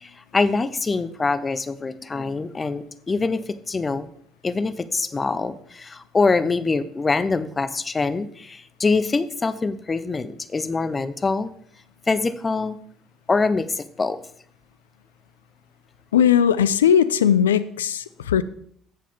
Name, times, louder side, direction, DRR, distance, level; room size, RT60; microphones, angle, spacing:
voice 1, 0.0-4.1 4.4-11.5 12.1-12.8 13.3-14.2, left 4 dB, 25° left, 14 dB, 0.7 m, -24 dB
voice 2, 16.1-18.4, left 8 dB, 85° left, 15 dB, 0.4 m, -18 dB
11.0 x 7.5 x 3.5 m, 0.63 s
hypercardioid pair, 55°, 0 cm